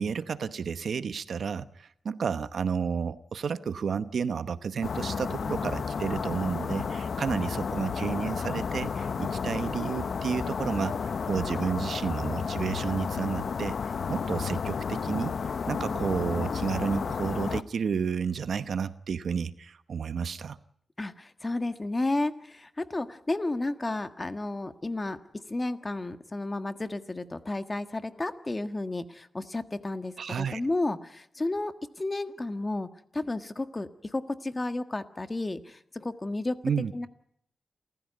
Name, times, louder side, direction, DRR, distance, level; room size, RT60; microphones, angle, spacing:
voice 1, 0.0-20.6 30.2-30.6 36.6-36.9, right 6 dB, 70° right, 13 dB, 1.0 m, -31 dB
sound 1, 4.8-17.6, left 6 dB, 65° left, 1.0 m, -32 dB
voice 2, 21.0-25.2 25.5-36.6 36.9-37.1, left 2 dB, 25° left, 9 dB, 1.5 m, -32 dB
28.5 x 15.0 x 9.4 m, 0.69 s
cardioid pair, 75°, 0 cm